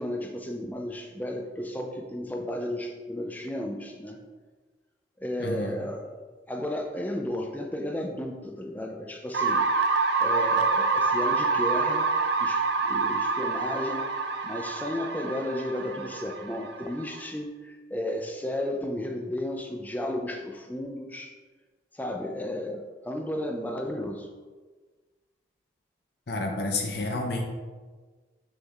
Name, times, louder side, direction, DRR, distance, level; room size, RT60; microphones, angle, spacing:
voice 1, 0.0-4.2 5.2-6.1 6.5-9.6 10.2-12.1 12.4-14.1 14.4-21.3 21.9-24.3, left 1 dB, 10° left, 3 dB, 0.4 m, -33 dB
voice 2, 5.4-5.8 26.3-27.4, left 2 dB, 60° left, 2 dB, 0.7 m, -30 dB
sound 1, 9.3-17.2, right 4 dB, 65° right, 0.5 m, -26 dB
6.3 x 6.1 x 2.4 m, 1.4 s
head